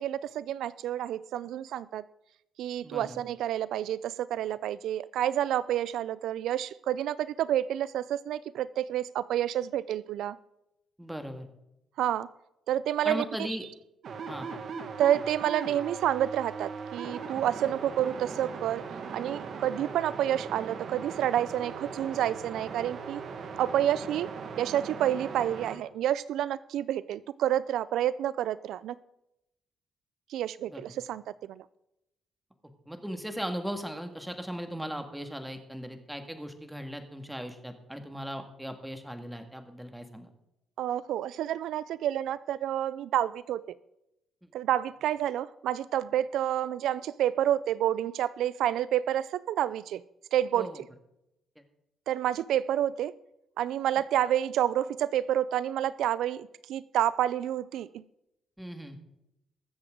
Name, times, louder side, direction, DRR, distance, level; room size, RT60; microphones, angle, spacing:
voice 1, 0.0-2.0 2.6-10.4 12.0-12.3 12.7-13.5 15.0-18.8 19.1-23.2 23.6-24.3 24.6-28.9 30.3-31.2 31.5-31.6 40.8-43.8 44.5-50.0 50.3-50.8 52.1-53.1 53.6-58.0, right 11 dB, 80° right, 18 dB, 0.3 m, -29 dB
voice 2, 2.8-3.2 11.0-11.5 13.0-13.7 14.3-14.6 30.7-30.8 32.9-40.3 50.5-50.8 58.6-59.0, equal, 5° right, 6 dB, 1.8 m, -38 dB
sound 1, 14.0-25.8, right 5 dB, 60° right, 1.5 m, -39 dB
22.0 x 7.6 x 3.7 m, 0.86 s
cardioid pair, 90°, 0 cm